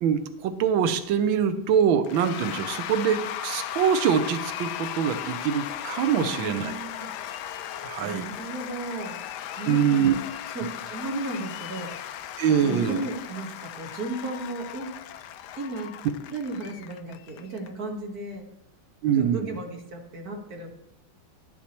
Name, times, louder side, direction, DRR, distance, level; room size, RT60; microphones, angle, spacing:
voice 1, 0.0-6.7 7.8-8.3 9.7-10.1 12.4-13.0 19.0-19.5, right 8 dB, 80° right, 9 dB, 1.5 m, -24 dB
Cheering / Applause / Crowd, 2.0-17.7, left 11 dB, 75° left, 1.0 m, -37 dB
voice 2, 6.1-7.1 8.0-9.2 9.6-10.0 10.5-12.0 12.6-15.0 15.6-15.9 16.3-18.5 19.1-20.7, right 2 dB, 50° right, 2 dB, 1.9 m, -35 dB
11.5 x 10.5 x 2.9 m, 0.75 s
omnidirectional pair, 2.2 m